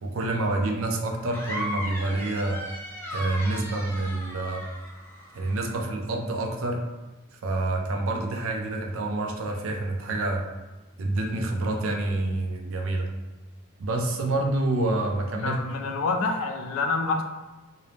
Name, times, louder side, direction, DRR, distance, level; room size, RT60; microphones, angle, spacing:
voice 1, 0.0-2.6 3.1-4.6 5.3-6.8 7.4-10.4 11.0-13.1 13.8-15.6, right 2 dB, 75° right, 1 dB, 0.5 m, -27 dB
sound 1, 1.3-5.7, left 1 dB, 10° left, 0.4 m, -36 dB
voice 2, 15.4-17.2, left 3 dB, 85° left, 4 dB, 0.4 m, -27 dB
2.5 x 2.0 x 3.1 m, 1.1 s
head